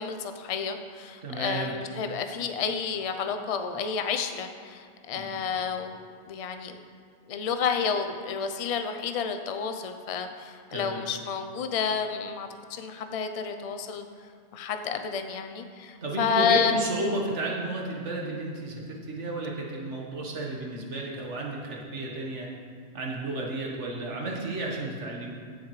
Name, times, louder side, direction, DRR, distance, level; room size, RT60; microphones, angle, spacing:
voice 1, 0.0-6.0 6.3-6.7 7.3-14.1 14.5-16.8, left 6 dB, 40° left, 7 dB, 0.5 m, -30 dB
voice 2, 1.2-1.8 5.1-5.3 10.7-11.0 16.0-22.5 22.9-25.3, right 2 dB, 90° right, -1 dB, 1.7 m, -32 dB
16.0 x 7.0 x 3.2 m, 2.2 s
omnidirectional pair, 1.2 m